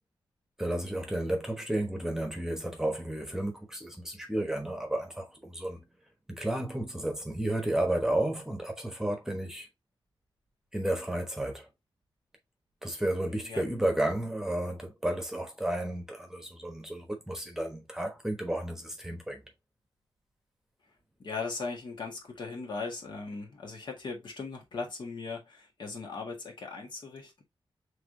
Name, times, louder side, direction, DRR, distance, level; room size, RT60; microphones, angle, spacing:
voice 1, 0.6-5.8 6.3-9.7 10.7-11.7 12.8-19.4, right 1 dB, 5° right, 1.1 m, -32 dB
voice 2, 21.2-27.4, left 4 dB, 55° left, 1.7 m, -38 dB
5.8 x 3.4 x 2.7 m
wide cardioid pair, 120°, 9 cm